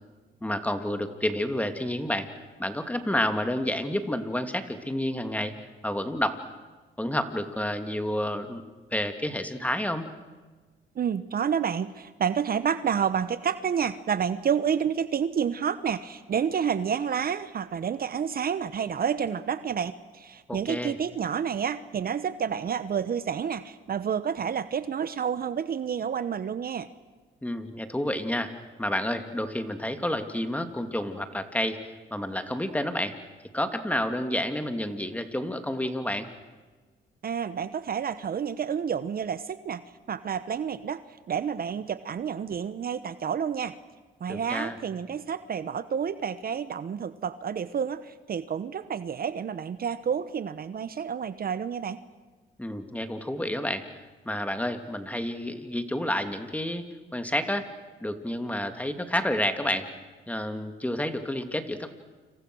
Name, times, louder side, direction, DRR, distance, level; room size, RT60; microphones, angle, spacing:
voice 1, 0.4-2.3 2.6-5.5 5.8-6.4 7.0-8.6 8.9-10.1 20.5-20.9 27.4-28.5 28.8-31.8 32.1-33.2 33.5-36.3 44.3-44.8 52.6-53.9 54.2-56.8 57.1-57.7 58.0-59.9 60.3-61.9, left 1 dB, 5° left, 8 dB, 2.7 m, -29 dB
voice 2, 11.0-26.9 37.2-39.8 40.1-41.0 41.3-43.7 44.2-52.0, right 7 dB, 50° right, 13 dB, 1.1 m, -29 dB
29.5 x 27.0 x 6.3 m, 1.3 s
cardioid pair, 90°, 20 cm